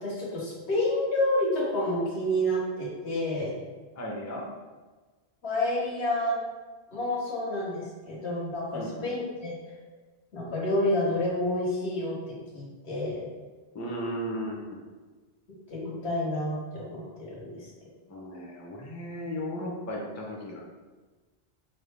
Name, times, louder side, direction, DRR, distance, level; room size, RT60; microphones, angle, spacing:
voice 1, 0.0-3.5 5.4-6.4 6.9-9.5 10.3-12.2 12.5-13.2 15.7-17.0 17.3-17.6, left 1 dB, 80° left, -5 dB, 1.4 m, -29 dB
voice 2, 3.9-4.5 8.7-9.1 13.7-14.8 18.1-20.6, equal, 25° left, -2 dB, 0.4 m, -35 dB
5.2 x 2.2 x 3.3 m, 1.3 s
omnidirectional pair, 1.1 m